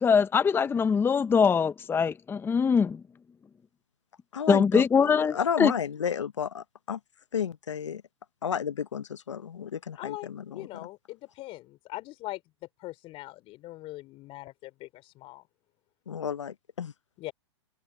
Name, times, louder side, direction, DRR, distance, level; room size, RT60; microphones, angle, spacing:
voice 1, 0.0-3.0 4.5-5.7, left 6 dB, 15° left, 0.9 m, -23 dB
voice 2, 4.3-7.0 7.3-8.0 8.4-10.9 16.1-16.9, left 8 dB, 90° left, 0.8 m, -32 dB
voice 3, 10.0-12.4 12.8-15.4 17.2-17.3, left 18 dB, 40° left, 4.0 m, -41 dB
hypercardioid pair, 115°, 15 cm